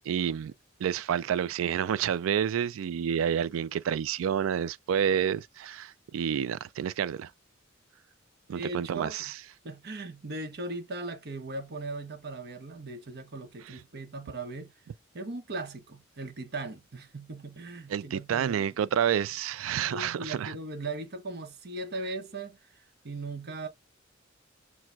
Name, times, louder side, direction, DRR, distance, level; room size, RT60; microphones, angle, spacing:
voice 1, 0.1-0.5 0.8-7.3 8.5-9.3 17.9-20.5, right 8 dB, 90° right, 0.3 m, -29 dB
voice 2, 8.5-9.3 9.6-14.7 15.1-18.6 19.8-23.7, right 2 dB, 55° right, 0.9 m, -38 dB
5.9 x 2.2 x 2.3 m
head